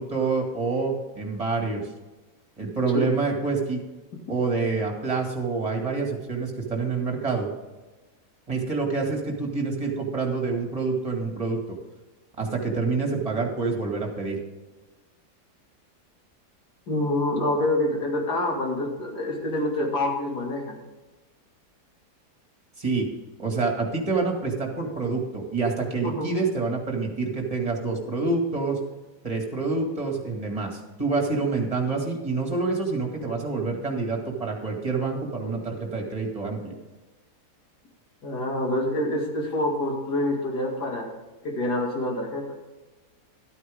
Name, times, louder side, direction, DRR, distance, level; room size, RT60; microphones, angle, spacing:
voice 1, 0.0-1.8 2.6-3.8 4.3-7.5 8.5-11.6 12.4-14.4 22.8-23.1 23.4-28.8 29.2-36.7, right 4 dB, 20° right, 1 dB, 2.2 m, -27 dB
voice 2, 16.9-20.8 26.0-26.3 38.2-41.1 41.4-42.5, left 1 dB, 80° left, 0 dB, 2.8 m, -26 dB
13.0 x 9.3 x 3.6 m, 1.2 s
omnidirectional pair, 1.7 m